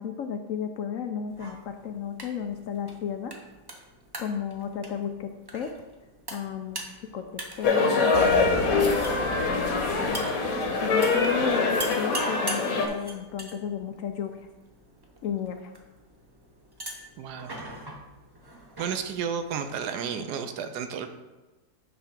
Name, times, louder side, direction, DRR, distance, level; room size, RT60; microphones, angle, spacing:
voice 1, 0.0-3.3 4.2-5.7 6.3-6.8 7.1-10.2 10.8-14.5 15.2-15.7, left 7 dB, 75° left, 6 dB, 0.7 m, -34 dB
sound 1, 1.3-20.1, right 1 dB, 25° right, 0.6 m, -43 dB
sound 2, 7.6-12.9, left 4 dB, 60° left, 1.4 m, -24 dB
sound 3, 8.1-12.7 12.9-13.2, left 2 dB, 40° left, 1.0 m, -41 dB
voice 2, 17.2-17.6 18.8-21.1, right 7 dB, 75° right, 8 dB, 1.2 m, -32 dB
8.7 x 3.5 x 6.0 m, 1.1 s
omnidirectional pair, 1.9 m